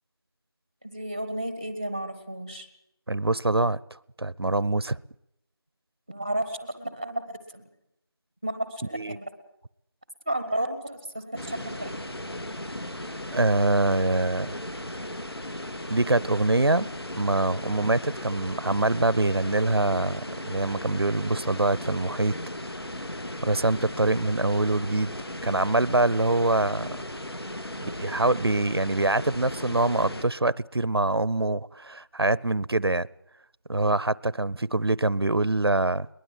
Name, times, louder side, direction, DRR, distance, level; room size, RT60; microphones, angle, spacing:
voice 1, 0.8-2.7 6.1-7.6 8.4-9.3 10.2-11.9, right 1 dB, 10° right, 0.9 m, -32 dB
voice 2, 3.1-3.8 4.2-5.0 8.9-9.2 13.3-14.6 15.9-22.4 23.4-25.2 25.4-27.0 27.8-33.1 33.7-36.1, right 2 dB, 80° right, 0.8 m, -24 dB
sound 1, 11.3-30.2, left 1 dB, 75° left, 3.0 m, -36 dB
22.5 x 20.0 x 7.6 m
figure-of-eight pair, 175°, 13 cm